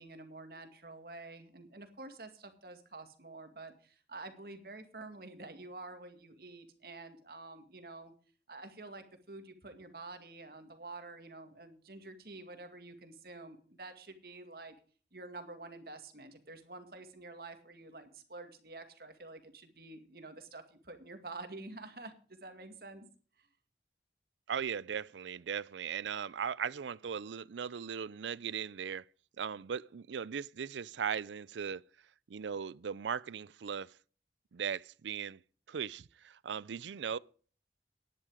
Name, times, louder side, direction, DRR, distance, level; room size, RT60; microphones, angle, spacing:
voice 1, 0.0-8.1 8.5-14.7 15.1-23.1 23.4-23.5, right 2 dB, 55° right, 2.1 m, -48 dB
voice 2, 24.5-29.0 29.4-31.8 32.3-33.9 34.5-35.4 35.7-37.2, right 7 dB, 90° right, 0.5 m, -38 dB
11.5 x 10.5 x 4.9 m
head